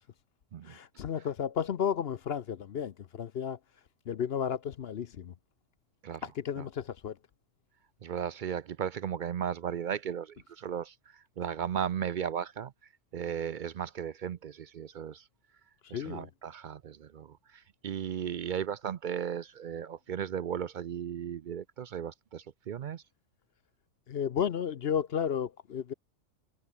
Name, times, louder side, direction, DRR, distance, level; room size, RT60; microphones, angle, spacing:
voice 1, 0.6-3.6 4.1-5.3 6.2-7.2 15.9-16.3 24.1-25.9, left 8 dB, 55° left, 0.9 m, -33 dB
voice 2, 8.0-12.7 13.1-15.3 15.9-23.0, right 8 dB, 60° right, 0.5 m, -36 dB
omnidirectional pair, 1.3 m